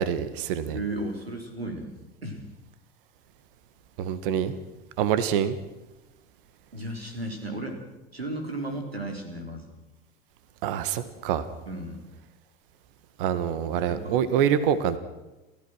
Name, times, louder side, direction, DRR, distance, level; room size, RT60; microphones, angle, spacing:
voice 1, 0.0-0.8 4.0-4.5 5.0-5.6 10.6-11.4 13.2-15.0, right 9 dB, 65° right, 14 dB, 1.6 m, -25 dB
voice 2, 0.7-1.9 2.2-2.4 6.7-7.8 8.1-9.8 11.7-12.0 13.9-14.2, right 1 dB, 90° right, 5 dB, 3.7 m, -34 dB
29.5 x 14.5 x 6.3 m, 1.0 s
figure-of-eight pair, 70°, 30 cm